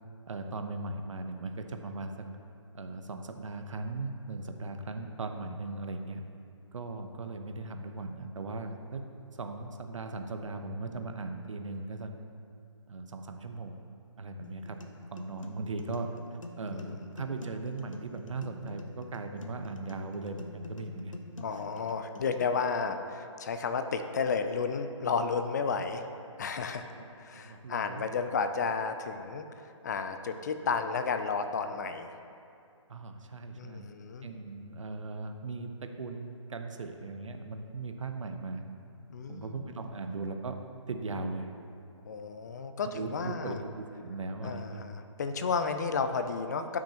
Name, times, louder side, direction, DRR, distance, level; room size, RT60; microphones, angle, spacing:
voice 1, 0.3-2.3 2.7-6.2 6.7-9.0 9.3-12.1 12.9-13.8 14.2-14.8 15.1-21.2 21.5-21.6 25.8-25.9 26.9-28.2 32.9-33.9 34.2-38.6 39.3-40.6 40.9-41.5 42.9-44.8, right 3 dB, 75° right, 6 dB, 0.9 m, -38 dB
sound 1, 14.4-22.4, left 2 dB, 90° left, 0.9 m, -47 dB
voice 2, 21.4-26.0 26.4-26.9 27.2-32.1 33.5-34.3 39.1-39.7 42.0-43.6 44.4-46.8, left 5 dB, 35° left, 8 dB, 0.5 m, -32 dB
14.5 x 6.2 x 2.9 m, 2.5 s
hypercardioid pair, 155°, 16 cm